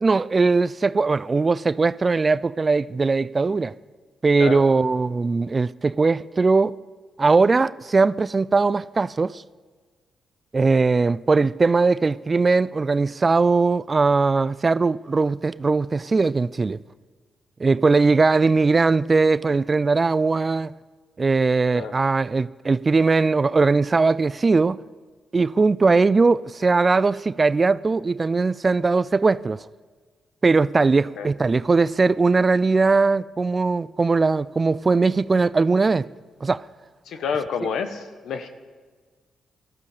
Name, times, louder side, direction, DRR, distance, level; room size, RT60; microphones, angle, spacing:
voice 1, 0.0-3.7 4.2-6.8 7.2-9.4 10.5-16.8 17.6-20.7 21.2-24.8 25.3-29.6 30.4-36.1 36.4-36.6, right 4 dB, 35° right, 0.4 m, -20 dB
voice 2, 37.1-38.5, left 6 dB, 75° left, 1.2 m, -29 dB
18.0 x 13.0 x 5.0 m
hypercardioid pair, 45°, 0 cm